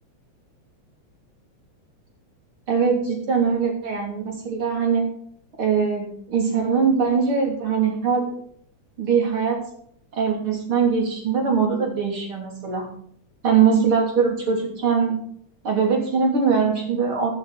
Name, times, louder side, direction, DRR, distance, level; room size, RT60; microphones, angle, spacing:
voice 1, 2.7-5.1 5.6-8.3 9.0-9.6 10.1-12.9 13.4-15.2 15.6-17.3, right 6 dB, 45° right, 1 dB, 3.9 m, -21 dB
15.5 x 9.7 x 4.2 m, 0.62 s
omnidirectional pair, 3.3 m